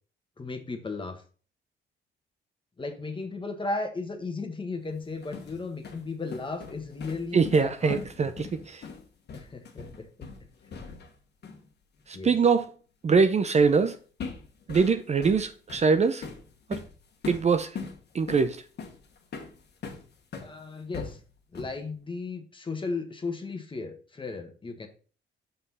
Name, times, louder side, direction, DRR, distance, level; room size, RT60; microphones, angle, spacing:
voice 1, 0.4-1.2 2.8-8.3 9.3-10.3 12.1-12.4 20.4-21.2 21.5-24.9, left 3 dB, 25° left, 1.3 m, -35 dB
sound 1, 5.0-11.2 11.4-11.7 13.6-13.8 14.2-20.5 20.9-21.9, left 5 dB, 55° left, 1.5 m, -41 dB
voice 2, 7.3-8.8 12.1-12.7 13.0-14.0 14.7-16.2 16.7-16.8 17.3-17.7 18.1-18.6, right 5 dB, 35° right, 0.6 m, -23 dB
6.0 x 5.6 x 4.2 m
cardioid pair, 90°, 20 cm